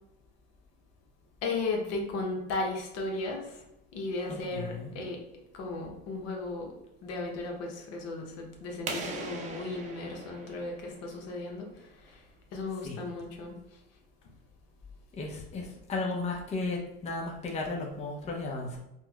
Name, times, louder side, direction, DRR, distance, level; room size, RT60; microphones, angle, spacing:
voice 1, 1.4-3.6 3.9-5.2 5.5-6.7 7.0-11.7 12.0-12.2 12.5-13.5, left 3 dB, 60° left, 1 dB, 0.8 m, -35 dB
voice 2, 4.3-4.9 12.8-13.1 15.1-18.8, left 3 dB, 20° left, -1 dB, 0.6 m, -35 dB
sound 1, 8.9-11.5, right 3 dB, 25° right, 0.5 m, -40 dB
4.3 x 2.1 x 2.3 m, 0.88 s
supercardioid pair, 100°, 29 cm